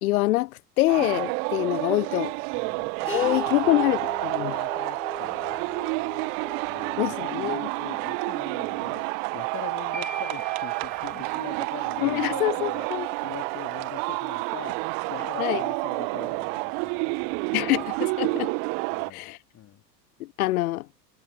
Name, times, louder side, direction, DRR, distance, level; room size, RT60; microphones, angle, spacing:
voice 1, 0.0-2.4 3.1-4.5 7.0-7.7 12.0-13.1 15.4-15.6 17.5-18.5 19.1-19.4 20.2-20.9, left 17 dB, 60° left, 1.1 m, -25 dB
sound 1, 0.9-19.1, right 40 dB or more, 50° right, 1.8 m, -29 dB
voice 2, 2.5-6.3 6.6-17.9 18.2-18.4 18.9-19.8, left 12 dB, 35° left, 3.2 m, -43 dB
sound 2, 3.0-8.8, left 4 dB, 85° left, 4.8 m, -41 dB
sound 3, 9.9-12.1, right 1 dB, 90° right, 3.5 m, -41 dB
figure-of-eight pair, 80°, 50 cm